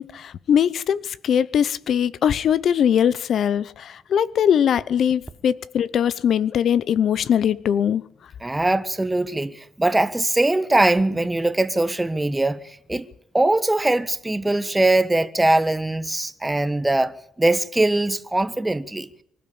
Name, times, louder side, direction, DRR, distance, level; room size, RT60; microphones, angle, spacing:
voice 1, 0.0-8.0, left 8 dB, 65° left, 0.8 m, -21 dB
voice 2, 8.4-12.6 12.9-13.0 13.3-19.1, right 2 dB, 10° right, 1.4 m, -21 dB
25.0 x 13.0 x 8.7 m
cardioid pair, 90°, 0 cm